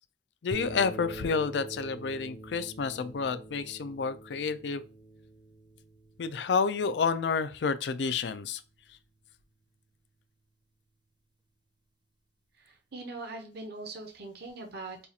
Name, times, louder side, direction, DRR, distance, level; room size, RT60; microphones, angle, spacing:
voice 1, 0.4-4.8 6.2-8.6, left 5 dB, 70° left, 0.4 m, -30 dB
sound 1, 0.5-9.0, right 2 dB, 25° right, 0.6 m, -46 dB
voice 2, 12.6-15.1, right 3 dB, 65° right, 0.8 m, -42 dB
5.4 x 2.4 x 2.7 m
head